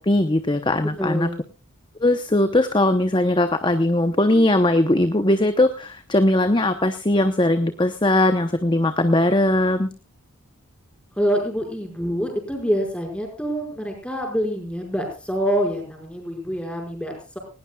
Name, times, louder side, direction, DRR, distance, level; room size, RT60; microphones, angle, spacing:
voice 1, 0.0-1.3 2.0-9.9, left 1 dB, 20° left, 9 dB, 0.8 m, -19 dB
voice 2, 1.0-1.4 11.2-17.4, equal, 5° left, 2 dB, 5.2 m, -26 dB
19.5 x 18.0 x 2.3 m, 0.35 s
head